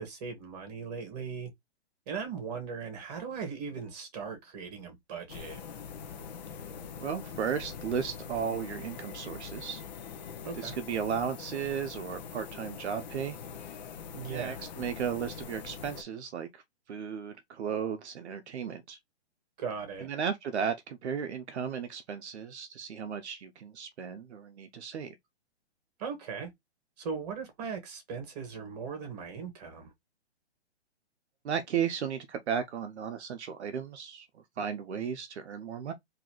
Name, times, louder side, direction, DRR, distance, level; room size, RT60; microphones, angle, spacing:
voice 1, 0.0-1.5 2.1-5.6 10.4-10.7 14.1-14.6 19.6-20.1 26.0-26.5 27.0-29.9, right 5 dB, 35° right, 1.7 m, -38 dB
sound 1, 5.3-16.0, left 6 dB, 40° left, 0.7 m, -43 dB
voice 2, 7.0-9.8 10.5-13.4 14.2-16.6 16.9-19.0 20.0-25.2 31.4-35.9, right 7 dB, 75° right, 0.7 m, -35 dB
3.9 x 2.8 x 3.0 m
hypercardioid pair, 160°, 34 cm